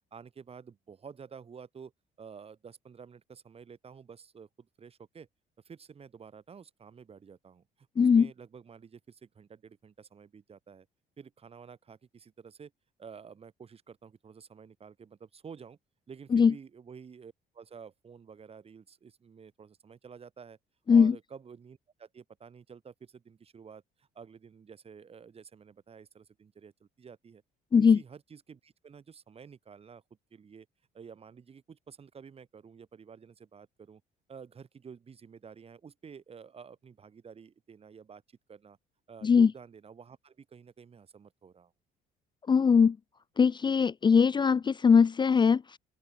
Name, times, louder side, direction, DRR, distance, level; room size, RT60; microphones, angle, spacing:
voice 1, 0.1-1.9 2.2-5.3 5.6-10.9 11.2-12.7 13.0-15.8 16.1-20.6 20.9-27.4 27.7-30.0 30.3-30.7 30.9-34.0 34.3-38.2 38.5-38.8 39.1-41.7, right 6 dB, 35° right, 5.9 m, -50 dB
voice 2, 8.0-8.3 16.3-16.5 20.9-21.1 27.7-28.0 39.2-39.5 42.5-43.0 43.4-45.8, left 6 dB, 25° left, 0.7 m, -21 dB
open air
cardioid pair, 110°, 17 cm